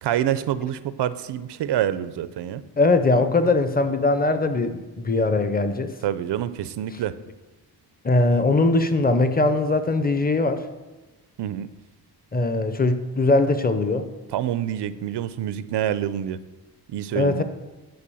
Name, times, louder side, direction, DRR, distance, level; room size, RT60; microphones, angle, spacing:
voice 1, 0.0-2.6 6.0-7.1 11.4-11.7 14.3-16.4 16.9-17.4, right 11 dB, 85° right, 14 dB, 0.6 m, -26 dB
voice 2, 2.8-5.9 8.0-10.6 12.3-14.1 17.1-17.4, left 2 dB, 25° left, 10 dB, 0.6 m, -21 dB
10.5 x 4.5 x 6.9 m, 1.2 s
wide cardioid pair, 160°, 41 cm